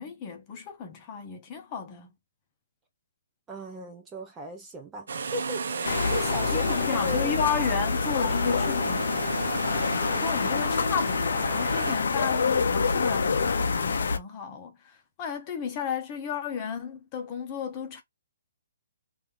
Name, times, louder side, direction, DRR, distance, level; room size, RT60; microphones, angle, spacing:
voice 1, 0.0-2.1 6.5-9.5 9.8-18.0, left 7 dB, 25° left, 0.8 m, -33 dB
voice 2, 3.5-7.4, right 1 dB, 10° right, 0.5 m, -37 dB
sound 1, 5.1-12.0, right 5 dB, 70° right, 0.7 m, -35 dB
sound 2, 5.8-14.2, left 5 dB, 75° left, 0.6 m, -26 dB
3.0 x 2.6 x 3.5 m
hypercardioid pair, 165°, 0 cm